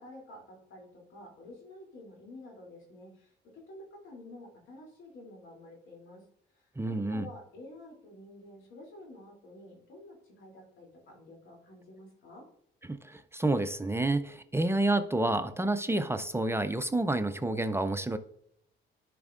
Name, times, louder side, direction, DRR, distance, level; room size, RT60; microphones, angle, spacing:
voice 1, 0.0-12.4, left 1 dB, 80° left, -1 dB, 2.8 m, -50 dB
voice 2, 6.8-7.3 12.9-18.2, right 2 dB, 10° right, 10 dB, 0.5 m, -29 dB
11.0 x 5.2 x 2.4 m, 0.70 s
cardioid pair, 90°, 20 cm